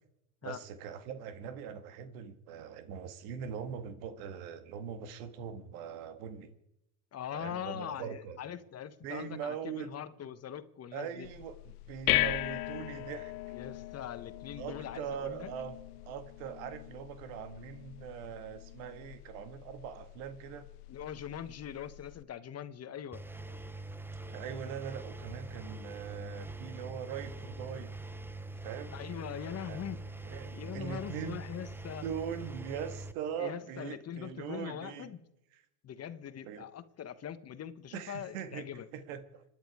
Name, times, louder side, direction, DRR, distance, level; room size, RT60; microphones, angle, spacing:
voice 1, 0.4-6.5 7.3-8.4 9.0-9.9 10.9-13.3 14.6-15.8 16.0-20.7 24.3-27.9 28.6-29.0 29.6-29.8 30.2-31.4 32.0-35.1 35.5-35.6 36.5-36.7 37.9-38.7 38.9-39.4, right 8 dB, 70° right, 1.8 m, -41 dB
voice 2, 7.1-11.3 13.5-15.5 20.9-23.2 28.9-30.0 30.5-32.0 33.4-35.2 35.8-38.9, left 9 dB, 35° left, 1.1 m, -42 dB
sound 1, 11.2-22.2, left 19 dB, 85° left, 0.7 m, -38 dB
Engine, 23.1-33.1, right 2 dB, 5° right, 0.7 m, -44 dB
26.5 x 10.5 x 4.9 m
supercardioid pair, 95°, 45 cm